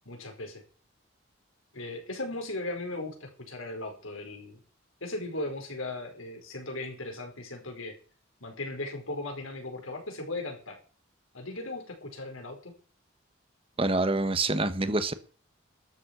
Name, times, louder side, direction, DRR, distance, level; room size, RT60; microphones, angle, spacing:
voice 1, 0.0-0.6 1.7-4.6 5.0-8.0 8.4-10.8 11.3-12.7, left 2 dB, 80° left, 4.9 m, -37 dB
voice 2, 13.8-15.1, right 2 dB, 25° right, 1.1 m, -26 dB
13.0 x 7.5 x 7.1 m
head